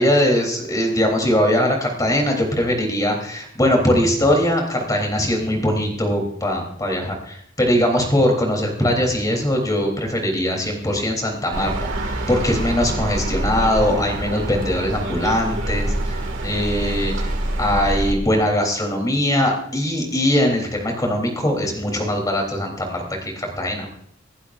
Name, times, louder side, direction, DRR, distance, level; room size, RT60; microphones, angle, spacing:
voice 1, 0.0-11.7 12.0-17.3 17.6-23.9, left 1 dB, 20° left, 1 dB, 3.4 m, -21 dB
sound 1, 11.5-18.1, right 1 dB, 80° right, 2.1 m, -26 dB
26.0 x 11.5 x 2.6 m, 0.69 s
head